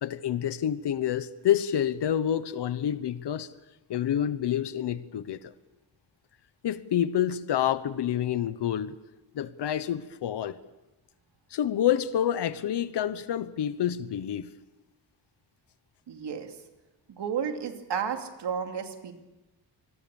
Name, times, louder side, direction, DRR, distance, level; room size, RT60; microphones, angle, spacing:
voice 1, 0.0-3.5 3.9-5.5 6.6-8.9 9.3-10.6 11.5-14.5, left 10 dB, 75° left, 14 dB, 1.1 m, -28 dB
voice 2, 16.1-16.5 17.1-19.1, right 7 dB, 80° right, 5 dB, 2.7 m, -32 dB
26.5 x 21.0 x 7.1 m, 1.1 s
wide cardioid pair, 140°, 41 cm